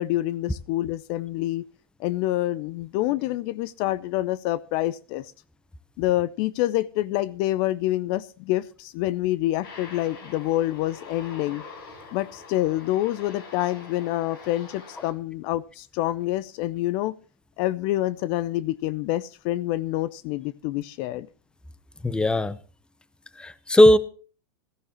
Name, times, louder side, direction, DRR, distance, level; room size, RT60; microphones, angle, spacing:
voice 1, 0.0-1.6 2.0-5.3 6.0-11.6 12.1-17.1 17.6-21.3, left 15 dB, 50° left, 18 dB, 0.5 m, -27 dB
Aircraft, 9.6-15.1, left 4 dB, 70° left, 4.7 m, -44 dB
voice 2, 22.0-22.6 23.4-24.0, left 1 dB, 5° left, 17 dB, 0.8 m, -17 dB
15.5 x 14.0 x 3.0 m, 0.38 s
hypercardioid pair, 105°, 12 cm